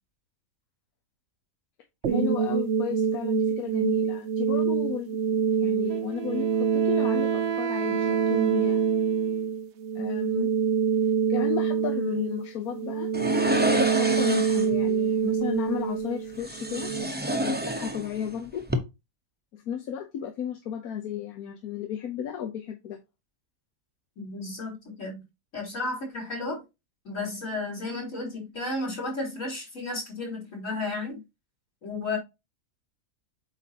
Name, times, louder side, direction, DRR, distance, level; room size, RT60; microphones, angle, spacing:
sound 1, 2.0-17.0, right 7 dB, 60° right, 0.9 m, -26 dB
voice 1, 2.1-8.8 9.9-10.5 11.3-13.1 13.8-16.9 17.4-18.6 19.5-23.0, left 8 dB, 85° left, 1.4 m, -34 dB
Wind instrument woodwind instrument, 5.9-9.5, right 9 dB, 85° right, 0.3 m, -32 dB
sound 2, 13.1-14.8 16.4-18.3 18.6-18.8, equal, 10° right, 0.6 m, -28 dB
voice 2, 24.2-25.2 25.5-26.6 27.0-31.2 31.8-32.2, left 2 dB, 60° left, 3.9 m, -33 dB
8.2 x 5.1 x 2.9 m
omnidirectional pair, 1.5 m